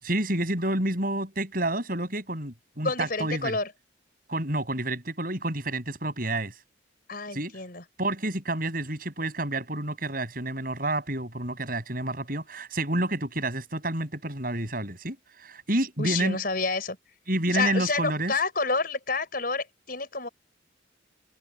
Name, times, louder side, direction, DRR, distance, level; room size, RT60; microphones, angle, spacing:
voice 1, 0.0-3.6 4.3-6.5 7.3-7.5 8.0-16.4 17.3-18.3, right 1 dB, 45° right, 7.8 m, -29 dB
voice 2, 2.8-3.7 7.1-7.8 16.0-17.0 17.5-20.3, left 4 dB, 50° left, 5.6 m, -29 dB
open air
head